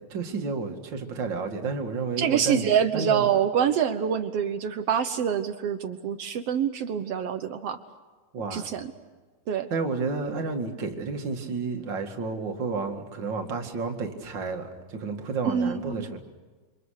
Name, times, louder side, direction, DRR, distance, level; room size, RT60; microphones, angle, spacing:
voice 1, 0.1-2.7 2.9-3.3 8.3-8.7 9.7-16.2, right 4 dB, 35° right, 4 dB, 2.3 m, -31 dB
voice 2, 2.2-7.8 8.5-8.9 9.5-9.7 15.4-16.0, right 8 dB, 75° right, 9 dB, 1.4 m, -26 dB
28.0 x 25.5 x 6.6 m, 1.4 s
omnidirectional pair, 4.1 m